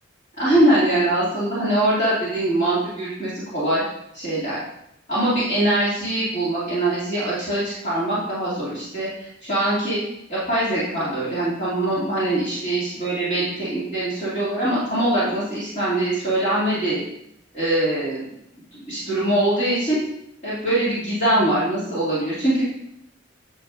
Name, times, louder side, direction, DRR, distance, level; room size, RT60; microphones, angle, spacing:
voice 1, 0.4-3.8 4.1-4.6 5.1-10.0 10.3-17.0 17.5-18.2 18.8-20.0 20.4-22.6, right 1 dB, 35° left, -10 dB, 2.5 m, -22 dB
9.1 x 6.5 x 2.5 m, 0.78 s
head